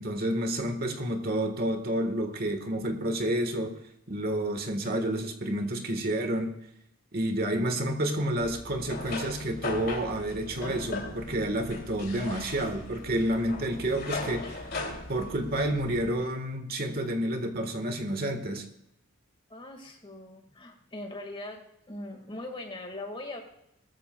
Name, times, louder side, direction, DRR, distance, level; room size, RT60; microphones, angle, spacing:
voice 1, 0.0-3.8 4.1-6.6 7.1-14.7 15.1-18.6, right 1 dB, 45° right, 6 dB, 1.5 m, -29 dB
sound 1, 8.4-16.1, left 2 dB, 45° left, 2.8 m, -38 dB
voice 2, 19.5-21.6 21.9-23.4, left 2 dB, 25° left, 4 dB, 1.9 m, -40 dB
20.0 x 13.5 x 2.3 m, 0.82 s
head